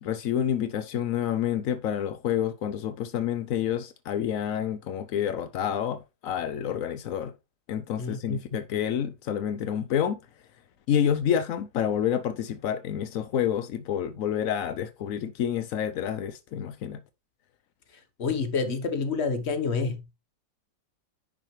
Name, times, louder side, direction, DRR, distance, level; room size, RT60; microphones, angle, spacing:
voice 1, 0.0-7.3 7.7-10.2 10.9-17.0, left 9 dB, 70° left, 0.7 m, -28 dB
voice 2, 8.0-8.4 18.2-20.1, left 4 dB, 40° left, 1.2 m, -28 dB
10.5 x 6.2 x 3.2 m
omnidirectional pair, 2.1 m